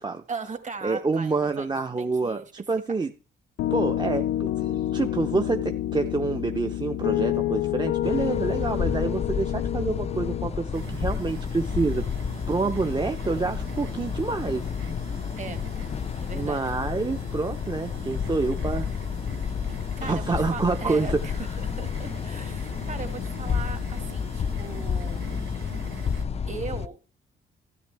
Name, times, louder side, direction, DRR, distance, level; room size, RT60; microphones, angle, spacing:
voice 1, 0.3-1.7 2.0-2.5 15.4-15.6 16.2-16.6 19.7-25.3 26.5-27.0, right 5 dB, 35° right, 8 dB, 1.8 m, -38 dB
voice 2, 0.8-3.1 3.7-12.0 12.5-14.7 16.3-18.9 19.7-21.2, right 3 dB, 20° right, 6 dB, 0.7 m, -27 dB
Piano, 3.6-10.5, left 13 dB, 85° left, 0.5 m, -28 dB
sound 1, 8.0-26.9, left 7 dB, 30° left, 0.4 m, -31 dB
sound 2, 10.7-26.2, right 10 dB, 80° right, 1.1 m, -43 dB
13.5 x 9.3 x 3.4 m, 0.34 s
cardioid pair, 90°, 20 cm